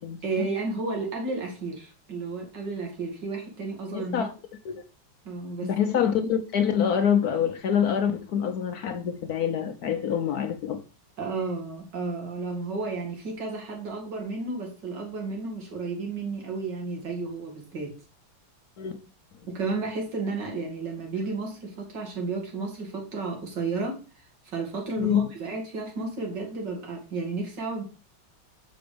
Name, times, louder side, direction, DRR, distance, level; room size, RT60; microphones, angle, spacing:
voice 1, 0.2-4.3 5.2-5.7 11.2-18.0 19.4-24.0 24.4-27.8, right 3 dB, 70° right, 2.8 m, -32 dB
voice 2, 3.9-4.3 4.6-4.8 5.6-10.8 18.8-18.9 25.0-25.3, left 8 dB, 65° left, 1.1 m, -25 dB
6.8 x 5.2 x 5.1 m
omnidirectional pair, 2.0 m